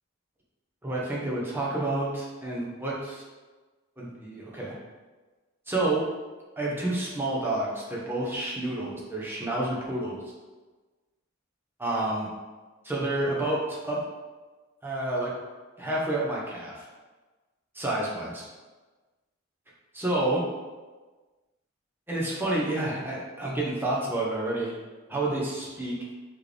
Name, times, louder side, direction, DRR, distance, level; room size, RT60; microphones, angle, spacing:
voice 1, 0.8-3.2 4.0-4.8 5.7-6.0 6.6-10.2 11.8-12.3 12.8-14.0 14.8-15.3 15.8-16.9 17.7-18.4 19.9-20.4 22.1-24.7 25.1-26.1, right 2 dB, 10° right, -5 dB, 0.8 m, -29 dB
4.6 x 3.1 x 3.4 m, 1.3 s
head